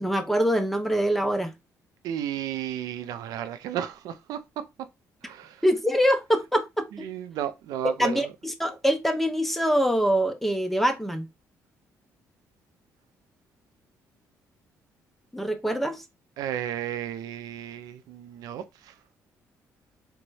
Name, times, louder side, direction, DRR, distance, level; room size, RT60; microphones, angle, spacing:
voice 1, 0.0-1.5 5.6-6.9 8.0-11.3 15.3-16.0, equal, 5° left, 0.7 m, -24 dB
voice 2, 2.0-4.7 5.2-5.6 7.0-8.3 16.4-18.9, right 10 dB, 80° right, 0.4 m, -33 dB
4.0 x 2.2 x 3.1 m
cardioid pair, 85°, 6 cm